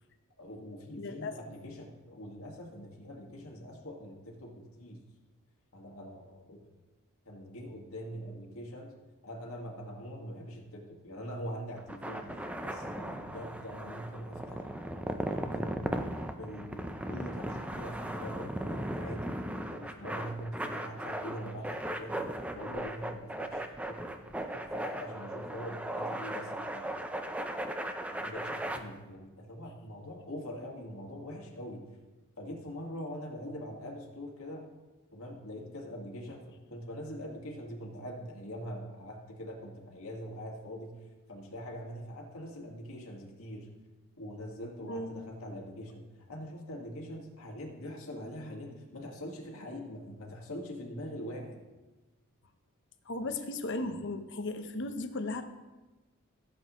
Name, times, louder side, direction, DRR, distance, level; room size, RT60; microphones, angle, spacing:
voice 1, 0.4-5.0 5.7-6.6 7.3-8.9 9.2-12.3 12.6-14.7 15.3-16.0 16.4-19.3 19.7-22.2 22.5-23.6 23.9-27.1 28.1-31.8 32.4-34.7 35.1-40.9 41.3-43.7 44.2-46.0 46.3-51.6, equal, 75° left, 0 dB, 1.9 m, -43 dB
voice 2, 1.0-1.4 44.9-45.2 53.1-55.5, left 2 dB, 55° left, 8 dB, 0.8 m, -36 dB
sound 1, 11.8-28.8, right 1 dB, 5° right, 0.5 m, -37 dB
16.0 x 7.8 x 3.1 m, 1.2 s
head